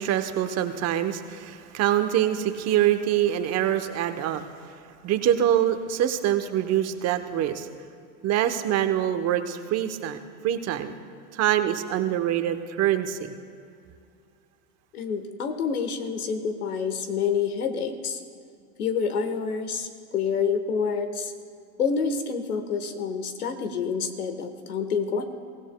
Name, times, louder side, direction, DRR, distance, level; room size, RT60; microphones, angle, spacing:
voice 1, 0.0-4.4 5.0-7.7 8.2-10.2 10.4-10.9 11.3-13.3, right 11 dB, 35° right, 9 dB, 0.9 m, -25 dB
voice 2, 14.9-18.2 18.8-21.3 21.8-25.2, left 6 dB, 90° left, 8 dB, 1.4 m, -28 dB
23.0 x 16.5 x 2.3 m, 2.4 s
hypercardioid pair, 105°, 43 cm